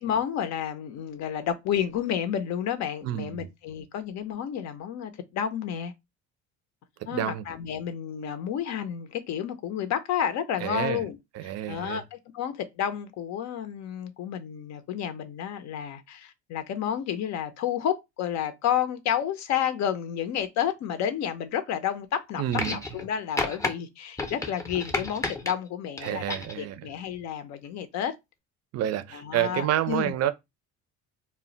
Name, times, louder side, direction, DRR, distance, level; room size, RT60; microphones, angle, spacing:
voice 1, 0.0-5.9 7.1-11.2 11.4-28.2 29.1-30.1, left 9 dB, 60° left, 0.5 m, -31 dB
voice 2, 3.0-3.4 7.1-7.4 10.6-11.0 11.4-12.0 22.4-22.8 26.0-26.9 28.7-30.3, right 12 dB, 55° right, 0.4 m, -29 dB
sound 1, 22.5-23.1 23.4-23.7 24.2-25.5 26.0-26.6 27.6-27.7, left 2 dB, 10° left, 0.5 m, -31 dB
2.2 x 2.1 x 3.7 m
cardioid pair, 110°, 30 cm